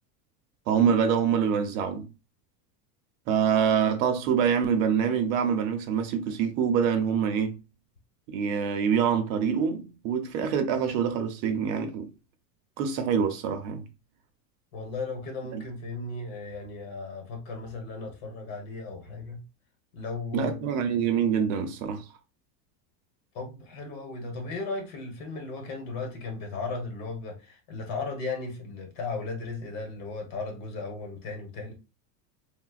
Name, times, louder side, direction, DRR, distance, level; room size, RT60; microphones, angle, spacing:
voice 1, 0.7-2.1 3.3-7.6 8.3-12.1 12.8-13.8 15.5-15.6 20.3-22.0, right 7 dB, 60° right, 0.7 m, -25 dB
voice 2, 14.7-19.4 19.9-20.6 23.3-31.7, left 3 dB, 55° left, 1.3 m, -36 dB
3.9 x 2.2 x 2.4 m
cardioid pair, 165°, 46 cm